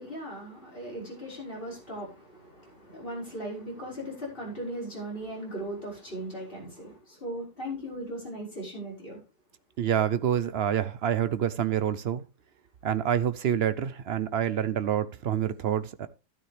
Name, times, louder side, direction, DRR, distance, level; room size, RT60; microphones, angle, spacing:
voice 1, 0.0-9.2, right 1 dB, 35° left, 5.7 m, -38 dB
voice 2, 9.8-12.2 12.8-16.1, right 9 dB, 60° right, 0.6 m, -27 dB
12.5 x 9.5 x 3.4 m
omnidirectional pair, 1.7 m